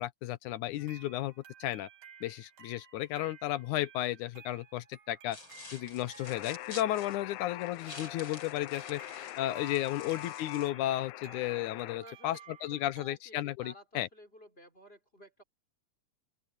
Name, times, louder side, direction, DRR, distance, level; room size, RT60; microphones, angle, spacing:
voice 1, 0.0-1.3 1.6-1.9 2.2-5.4 5.7-14.1, left 14 dB, 70° left, 2.1 m, -34 dB
sound 1, 0.8-13.2, right 6 dB, 80° right, 5.0 m, -56 dB
sound 2, 5.3-10.7, left 3 dB, 35° left, 5.6 m, -50 dB
Alarm, 6.2-12.0, left 18 dB, 90° left, 1.7 m, -44 dB
voice 2, 9.9-10.4 12.0-15.4, equal, 15° left, 3.8 m, -54 dB
open air
omnidirectional pair, 4.0 m